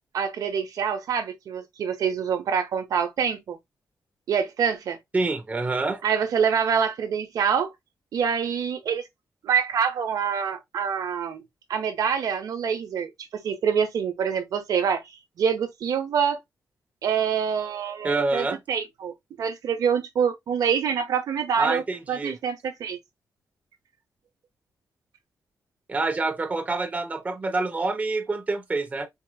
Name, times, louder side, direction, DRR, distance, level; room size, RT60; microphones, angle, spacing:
voice 1, 0.1-3.6 4.3-5.0 6.0-7.7 8.1-9.0 9.4-11.4 11.7-15.0 15.4-16.4 17.0-23.0, right 7 dB, 80° right, 1.0 m, -26 dB
voice 2, 5.1-6.0 18.0-18.6 21.6-22.3 25.9-29.1, right 3 dB, 25° right, 0.8 m, -27 dB
4.5 x 3.0 x 2.2 m
wide cardioid pair, 135°, 6 cm